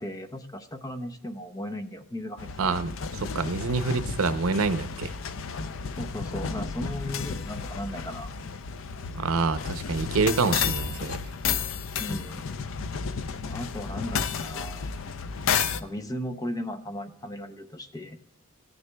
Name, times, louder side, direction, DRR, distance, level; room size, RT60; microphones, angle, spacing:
voice 1, 0.0-2.7 6.0-8.3 12.0-12.4 13.4-14.9 15.8-18.2, left 1 dB, 15° left, 0.6 m, -36 dB
sound 1, 2.4-15.8, left 6 dB, 70° left, 0.5 m, -32 dB
voice 2, 2.6-2.9 3.2-5.1 9.1-11.2, right 4 dB, 90° right, 0.6 m, -26 dB
16.0 x 9.7 x 2.2 m
head